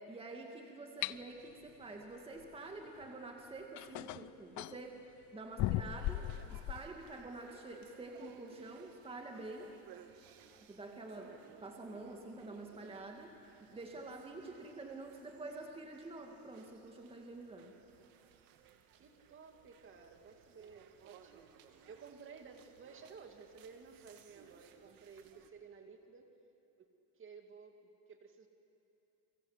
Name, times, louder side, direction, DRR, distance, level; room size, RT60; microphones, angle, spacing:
voice 1, 0.0-5.0 5.3-9.7 10.7-11.4 11.6-13.3 13.6-17.7, right 2 dB, 15° right, 2 dB, 2.0 m, -48 dB
sound 1, 1.0-1.2 3.0-3.1 3.8-4.8 5.6-6.9, left 15 dB, 50° left, 0.6 m, -37 dB
sound 2, 5.8-25.5, right 9 dB, 60° right, 2.1 m, -62 dB
voice 2, 18.9-26.3 26.8-28.5, right 5 dB, 30° right, 5 dB, 2.4 m, -55 dB
30.0 x 23.5 x 8.2 m, 2.8 s
cardioid pair, 150°, 39 cm